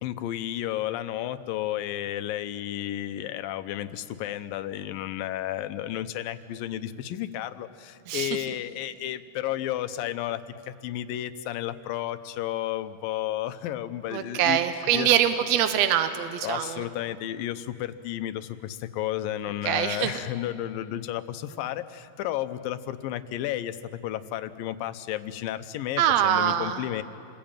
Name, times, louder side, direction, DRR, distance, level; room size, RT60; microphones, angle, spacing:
voice 1, 0.0-14.6 14.9-15.1 16.4-23.8 24.0-27.0, left 13 dB, 80° left, 11 dB, 2.6 m, -32 dB
voice 2, 8.1-8.4 14.1-16.8 19.6-20.2 26.0-26.8, right 10 dB, 75° right, 9 dB, 1.6 m, -24 dB
28.0 x 21.0 x 8.9 m, 2.4 s
omnidirectional pair, 4.1 m